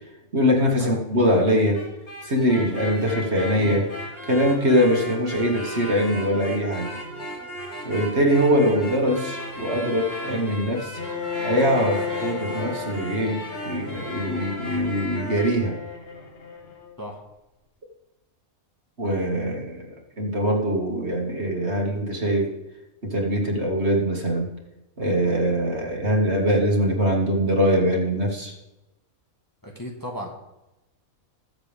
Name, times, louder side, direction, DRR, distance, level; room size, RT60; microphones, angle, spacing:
voice 1, 0.3-1.8 2.2-3.9 4.2-6.9 7.8-11.0 11.4-15.8 19.0-19.9 20.2-22.5 23.1-24.5 25.0-28.5, equal, 50° right, 0 dB, 2.3 m, -22 dB
sound 1, 1.7-15.5, equal, 80° left, 3.8 m, -35 dB
Bowed string instrument, 10.9-16.9, left 6 dB, 45° left, 1.6 m, -34 dB
voice 2, 29.6-30.3, equal, 15° left, 0 dB, 1.6 m, -35 dB
21.0 x 7.4 x 3.5 m, 0.95 s
omnidirectional pair, 1.5 m